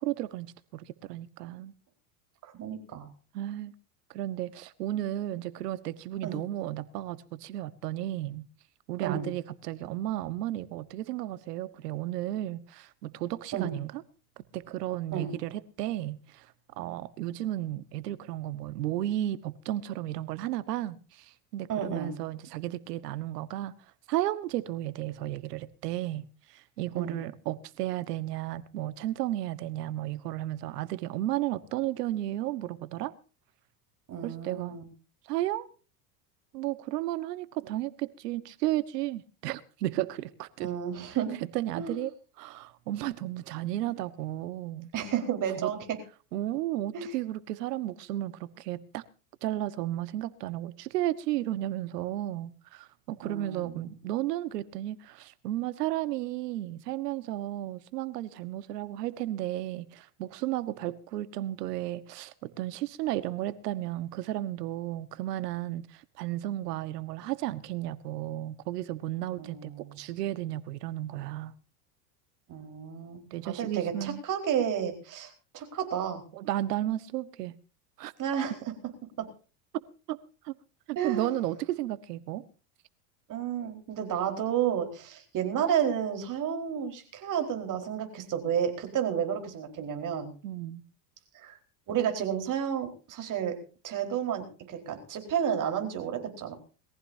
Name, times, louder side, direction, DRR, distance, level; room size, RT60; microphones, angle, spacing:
voice 1, 0.0-1.7 3.3-3.7 4.1-8.4 8.9-14.0 14.5-16.5 16.8-23.7 24.1-33.1 34.2-34.8 35.3-35.7 36.5-40.7 41.5-44.9 45.5-45.7 46.3-49.0 49.4-71.5 73.3-74.2 76.3-77.6 78.0-78.1 80.1-80.2 80.4-80.5 80.9-82.4 90.4-90.8, right 14 dB, 90° right, 1.4 m, -33 dB
voice 2, 2.4-3.1 6.2-6.4 9.0-9.3 13.5-13.7 15.1-15.3 21.7-22.2 27.0-27.2 34.1-34.8 40.6-41.4 41.7-42.0 44.9-46.0 46.9-47.1 53.2-53.9 69.4-70.0 72.5-76.2 78.2-78.5 79.2-79.3 81.0-81.3 83.3-90.3 91.3-91.6 91.9-93.5 93.8-96.6, right 8 dB, 40° right, 4.5 m, -31 dB
22.0 x 15.0 x 2.7 m
supercardioid pair, 120°, 46 cm